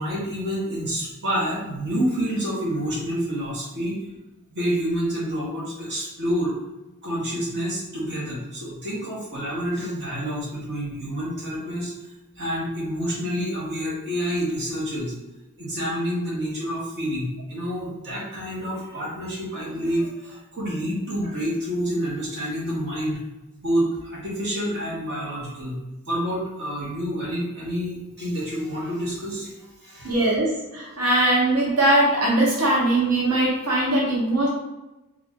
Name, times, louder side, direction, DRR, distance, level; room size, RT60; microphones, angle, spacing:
voice 1, 0.0-4.0 4.5-6.6 7.0-11.9 12.4-15.1 15.6-23.2 23.6-25.8 26.1-29.5 29.8-30.1, equal, 50° right, -6 dB, 1.2 m, -28 dB
voice 2, 30.0-34.5, right 1 dB, 85° right, -5 dB, 0.8 m, -21 dB
2.9 x 2.4 x 3.6 m, 1.0 s
head